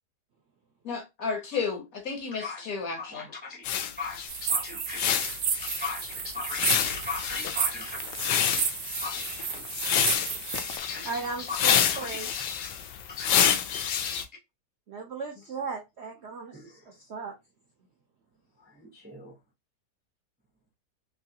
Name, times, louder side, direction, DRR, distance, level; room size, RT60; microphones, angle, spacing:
voice 1, 0.8-3.3, left 5 dB, 60° left, 1.3 m, -32 dB
voice 2, 2.3-2.7 3.0-5.2 5.6-8.0 9.0-9.2 10.8-12.2 13.1-13.3 16.5-16.7 18.8-19.3, left 4 dB, 10° right, 0.4 m, -38 dB
sound 1, 3.6-14.2, left 8 dB, 85° left, 1.2 m, -28 dB
sound 2, 4.3-10.8, right 8 dB, 85° right, 1.3 m, -32 dB
voice 3, 11.0-12.3 14.9-16.5 16.9-17.3, right 4 dB, 65° right, 0.7 m, -36 dB
3.2 x 2.9 x 2.7 m
omnidirectional pair, 1.8 m